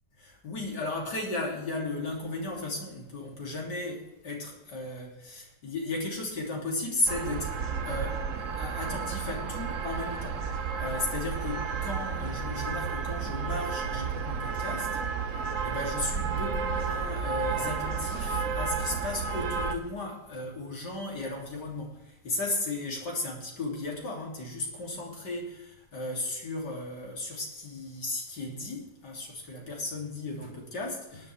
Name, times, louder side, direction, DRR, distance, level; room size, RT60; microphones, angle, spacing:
voice 1, 0.2-7.5 7.8-8.2 8.5-15.0 15.3-31.3, left 2 dB, 75° left, -1 dB, 3.9 m, -35 dB
sound 1, 7.1-19.7, right 5 dB, 55° right, 1.2 m, -32 dB
18.5 x 10.5 x 3.5 m, 0.90 s
omnidirectional pair, 1.8 m